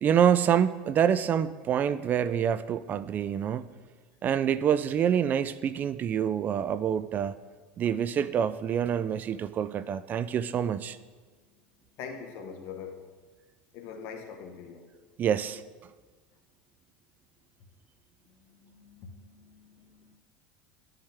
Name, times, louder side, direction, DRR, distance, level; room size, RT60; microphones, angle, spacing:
voice 1, 0.0-3.7 4.2-7.3 7.8-11.0 15.2-15.6, right 8 dB, 35° right, 15 dB, 0.3 m, -26 dB
voice 2, 12.0-13.0 13.7-14.9 18.4-20.2, left 6 dB, 60° left, 4 dB, 1.3 m, -43 dB
11.5 x 5.5 x 3.5 m, 1.3 s
supercardioid pair, 110°, 5 cm